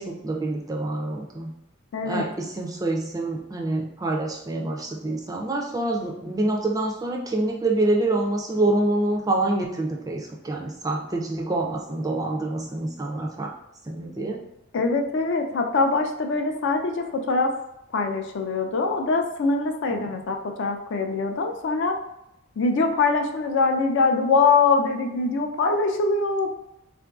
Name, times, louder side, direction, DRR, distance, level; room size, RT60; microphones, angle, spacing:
voice 1, 0.0-1.5 2.1-13.5 13.9-14.4 19.9-20.2, right 2 dB, 15° right, 0 dB, 0.3 m, -26 dB
voice 2, 1.9-2.3 14.7-17.5 17.9-22.0 22.6-26.5, left 3 dB, 55° left, 4 dB, 0.4 m, -23 dB
3.7 x 2.5 x 2.3 m, 0.85 s
head